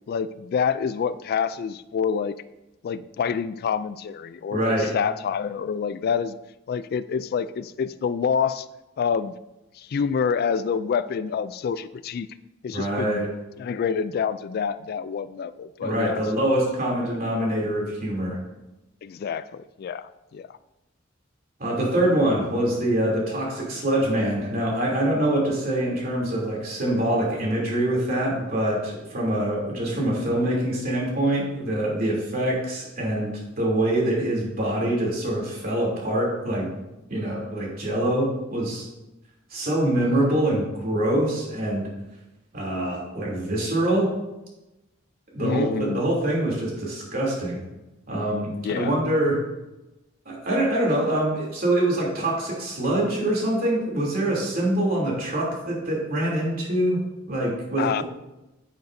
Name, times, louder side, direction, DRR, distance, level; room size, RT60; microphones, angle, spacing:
voice 1, 0.1-2.3 2.8-6.4 6.7-8.7 9.0-9.3 9.8-12.3 12.6-13.3 13.6-16.5 19.0-20.6 45.4-46.0 48.6-48.9 57.8-58.0, left 6 dB, 50° left, 15 dB, 0.3 m, -27 dB
voice 2, 4.5-4.9 12.7-13.3 15.8-18.4 21.6-36.7 37.1-38.9 39.5-41.9 42.5-44.1 45.3-47.6 48.1-49.4 50.2-57.0 57.3-58.0, right 1 dB, 50° right, -3 dB, 3.0 m, -24 dB
9.5 x 9.1 x 2.7 m, 1.0 s
head